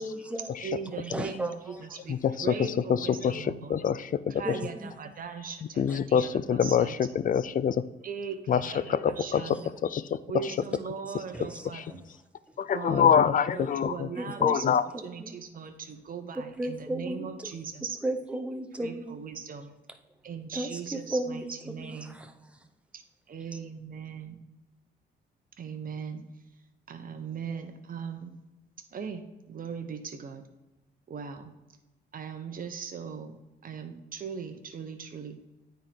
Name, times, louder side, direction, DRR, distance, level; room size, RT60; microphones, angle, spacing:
voice 1, 0.0-0.5 1.1-1.8 4.4-4.9 9.5-9.6 11.3-11.6 11.9-12.0 13.1-13.2 14.2-15.3 16.4-17.5 18.0-19.2 20.5-22.3, right 1 dB, 5° right, 6 dB, 0.8 m, -35 dB
voice 2, 0.6-3.8 4.3-7.0 8.0-9.7 10.2-12.0 12.7-18.0 18.8-19.7 20.2-22.2 22.9-23.0 23.3-24.4 25.6-26.2 26.9-28.4 28.9-30.4 31.1-31.5 32.1-35.4, right 6 dB, 45° right, 6 dB, 1.1 m, -39 dB
voice 3, 3.2-4.1 5.8-7.8 8.5-9.4 9.9-10.0 11.7-11.8 12.6-14.1 14.4-14.8, left 8 dB, 45° left, 15 dB, 0.4 m, -25 dB
9.4 x 4.4 x 3.7 m, 1.0 s
cardioid pair, 90°, 20 cm